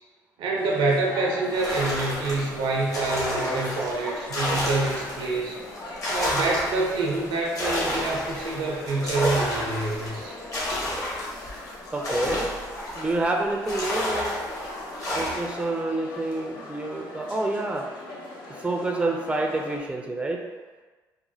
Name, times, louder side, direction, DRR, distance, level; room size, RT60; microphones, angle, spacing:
voice 1, 0.4-5.6 6.1-10.3, right 3 dB, 75° right, -1 dB, 0.6 m, -26 dB
General murmur echoey space, 0.6-19.8, left 2 dB, 65° left, 0.7 m, -39 dB
sound 1, 1.5-5.4 5.8-13.3 13.7-15.6, left 1 dB, 40° left, 1.0 m, -30 dB
voice 2, 11.9-12.6 12.9-14.3 15.1-17.8 18.6-20.4, right 2 dB, 15° right, 1 dB, 0.4 m, -28 dB
3.0 x 2.1 x 2.7 m, 1.3 s
supercardioid pair, 60°, 9 cm